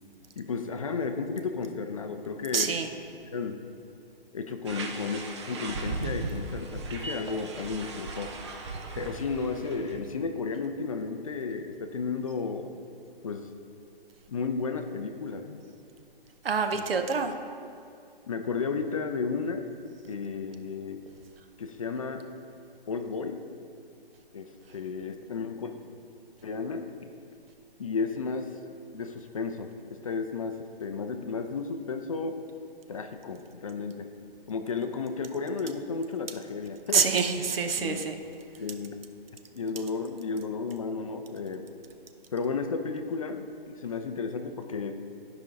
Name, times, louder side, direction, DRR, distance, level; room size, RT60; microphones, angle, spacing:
voice 1, 0.4-2.8 3.3-3.6 4.3-8.3 9.0-12.8 13.2-13.5 14.3-15.6 16.7-16.8 18.3-19.7 20.1-21.0 21.6-22.3 22.9-23.4 24.3-25.7 26.4-26.9 27.8-28.5 28.9-32.4 32.9-34.1 34.5-37.1 37.8-38.1 38.6-39.0 39.5-41.7 42.3-45.0, left 4 dB, 35° left, 7 dB, 0.4 m, -33 dB
voice 2, 2.5-2.9 16.4-17.3 36.9-38.2, right 5 dB, 75° right, 6 dB, 0.9 m, -26 dB
sound 1, 4.6-10.0, right 3 dB, 30° right, 0.7 m, -37 dB
12.5 x 5.2 x 3.7 m, 2.5 s
hypercardioid pair, 160°, 29 cm